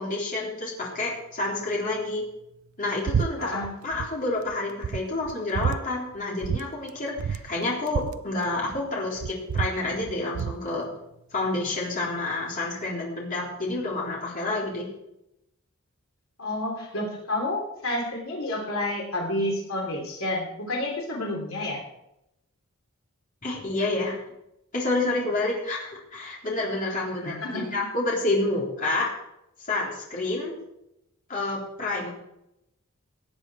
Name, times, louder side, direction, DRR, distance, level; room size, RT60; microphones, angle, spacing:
voice 1, 0.0-2.2 2.8-10.9 11.3-14.9 23.4-24.2 24.7-29.1 29.7-30.5 31.3-32.1, left 2 dB, 40° left, -4 dB, 3.7 m, -29 dB
sound 1, 3.1-3.3 3.6-4.1 4.5-4.6 4.8-5.8 6.4-6.6 6.9-7.0 7.2-8.9 9.2-10.6, right 7 dB, 75° right, 0.4 m, -29 dB
voice 2, 3.4-3.8 16.4-21.8 27.2-27.7, left 1 dB, 70° left, 0 dB, 3.2 m, -30 dB
17.5 x 8.9 x 4.8 m, 0.84 s
head